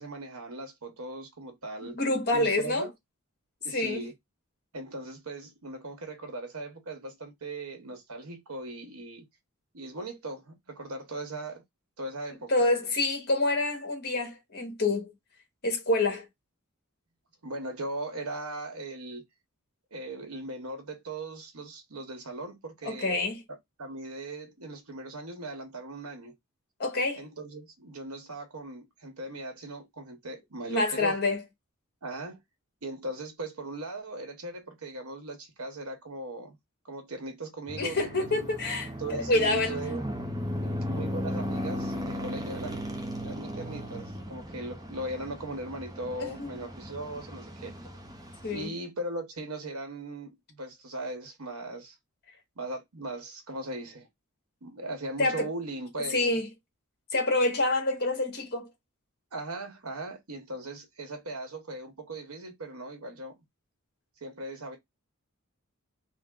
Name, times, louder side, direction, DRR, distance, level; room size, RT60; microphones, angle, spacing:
voice 1, 0.0-2.0 2.3-2.9 3.6-4.1 4.7-9.2 9.7-11.6 12.0-12.7 17.4-19.2 19.9-23.2 23.8-26.3 27.2-31.2 32.0-32.4 32.8-36.6 36.8-38.5 39.0-40.0 40.8-42.9 43.2-47.7 48.5-51.9 52.6-54.1 54.6-56.3 59.3-63.4 64.2-64.8, right 2 dB, 90° right, 1.2 m, -39 dB
voice 2, 1.9-2.9 3.7-4.0 12.5-15.1 15.6-16.3 22.8-23.4 26.8-27.2 30.7-31.4 37.8-39.8 46.2-46.5 48.4-48.7 55.2-55.5 56.1-56.5 57.1-58.7, left 2 dB, 50° left, 1.5 m, -27 dB
sound 1, 37.7-48.7, equal, 15° right, 0.6 m, -36 dB
3.7 x 2.1 x 3.7 m
head